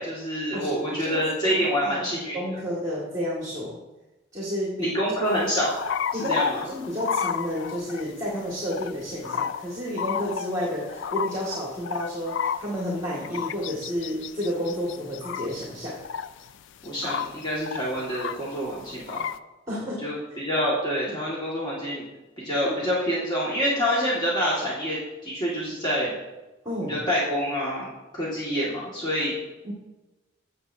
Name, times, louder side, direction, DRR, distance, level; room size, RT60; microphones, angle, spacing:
voice 1, 0.0-2.4 4.8-5.8 6.3-6.6 16.8-19.2 20.0-22.1 22.4-26.2 26.8-29.4, equal, 20° left, -7 dB, 1.8 m, -27 dB
voice 2, 1.0-2.0 2.3-3.8 4.3-4.9 6.1-16.0 19.7-20.0 22.6-22.7 26.6-27.0 29.6-29.7, equal, 15° right, -5 dB, 1.9 m, -31 dB
sound 1, 5.3-8.1 8.7-8.9 9.2-9.7 10.0-16.5 16.8-18.5 18.9-19.4, left 7 dB, 65° left, 0.3 m, -31 dB
14.5 x 7.6 x 2.7 m, 1.1 s
head